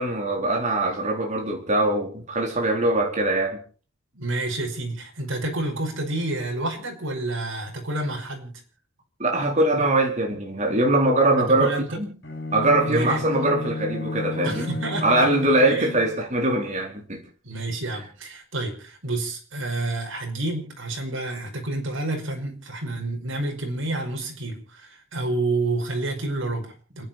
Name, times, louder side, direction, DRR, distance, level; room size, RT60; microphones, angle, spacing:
voice 1, 0.0-3.6 9.2-12.1 12.5-14.7 15.0-17.2, right 2 dB, 35° right, 4.1 m, -22 dB
voice 2, 4.1-8.5 11.4-12.0 12.9-13.2 14.4-15.1 15.6-15.9 17.4-27.1, right 2 dB, 80° right, 5.3 m, -29 dB
Bowed string instrument, 12.2-16.3, left 2 dB, 60° left, 6.1 m, -32 dB
29.5 x 10.0 x 4.4 m
head